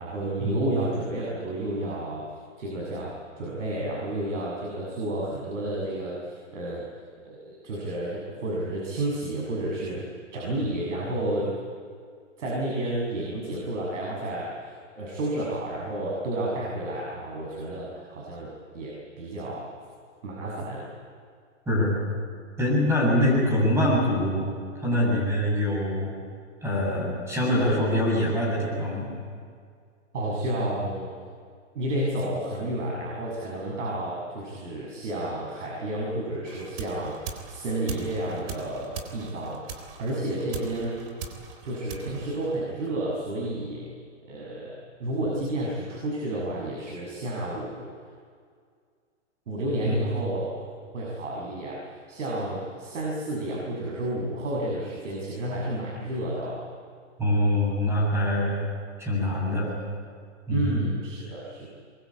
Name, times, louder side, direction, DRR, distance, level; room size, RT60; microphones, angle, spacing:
voice 1, 0.0-2.2 2.6-6.8 7.2-10.0 10.3-11.5 12.4-19.7 20.2-20.9 23.2-23.3 30.1-31.1 31.7-39.6 40.0-41.1 41.6-43.8 44.2-47.9 49.5-50.6 50.9-51.8 52.1-56.7 60.5-61.7, right 1 dB, 80° right, -3 dB, 6.8 m, -31 dB
voice 2, 22.6-24.5 24.8-26.1 26.6-29.1 49.8-50.0 57.2-58.6 59.0-59.7 60.5-60.8, left 1 dB, 5° right, -3 dB, 7.3 m, -24 dB
sound 1, 36.5-43.0, right 6 dB, 50° right, 3.8 m, -41 dB
23.5 x 23.0 x 8.6 m, 2.1 s
hypercardioid pair, 165°, 37 cm